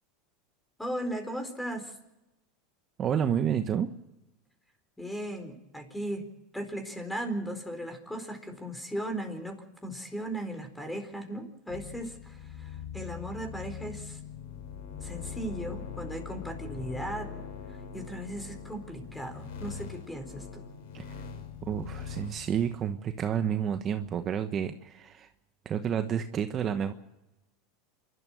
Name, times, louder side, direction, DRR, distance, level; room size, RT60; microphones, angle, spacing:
voice 1, 0.8-2.0 5.0-6.3 6.5-14.2 15.0-17.3 17.7-20.6, right 1 dB, 5° left, 7 dB, 4.4 m, -37 dB
voice 2, 3.0-3.9 20.9-21.0 21.6-25.3 25.6-26.9, right 8 dB, 35° right, 8 dB, 1.2 m, -30 dB
sound 1, 11.7-22.8, left 7 dB, 85° left, 5.2 m, -42 dB
27.5 x 13.0 x 7.7 m, 0.95 s
supercardioid pair, 110°, 0 cm